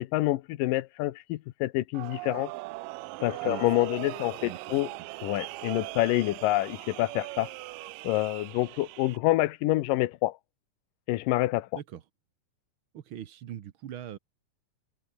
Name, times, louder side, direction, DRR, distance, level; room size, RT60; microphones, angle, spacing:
voice 1, 0.0-2.5 3.2-4.9 5.2-7.5 8.0-10.4 11.1-11.7, left 17 dB, 90° left, 2.5 m, -27 dB
sound 1, 1.9-9.2, right 22 dB, 90° right, 2.2 m, -40 dB
voice 2, 4.4-5.2 11.7-12.0 12.9-14.2, right 10 dB, 65° right, 1.3 m, -42 dB
omnidirectional pair, 3.8 m